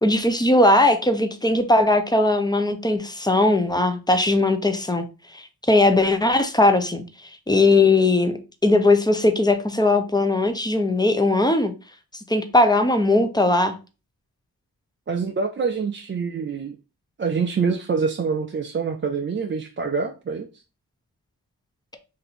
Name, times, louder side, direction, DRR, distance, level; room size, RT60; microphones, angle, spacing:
voice 1, 0.0-5.0 5.3-7.0 7.5-11.7 12.3-13.8, left 2 dB, 10° left, 0.6 m, -19 dB
voice 2, 15.1-16.8 17.2-20.5, right 5 dB, 30° right, 0.4 m, -25 dB
2.8 x 2.6 x 4.2 m
cardioid pair, 40°, 39 cm